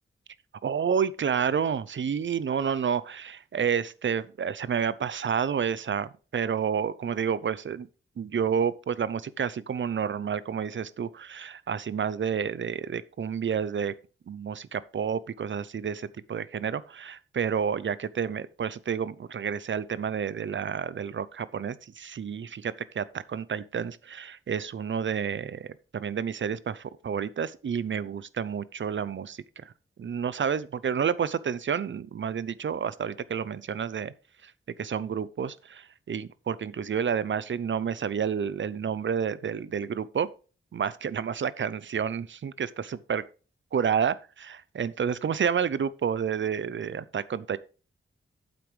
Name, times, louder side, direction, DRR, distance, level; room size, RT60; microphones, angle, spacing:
voice 1, 0.6-7.9 8.2-13.9 14.3-29.7 30.0-34.1 34.4-34.5 34.8-40.3 40.7-43.2 43.7-47.6, right 7 dB, 65° right, 0.6 m, -30 dB
9.0 x 7.8 x 3.3 m
wide cardioid pair, 115°, 21 cm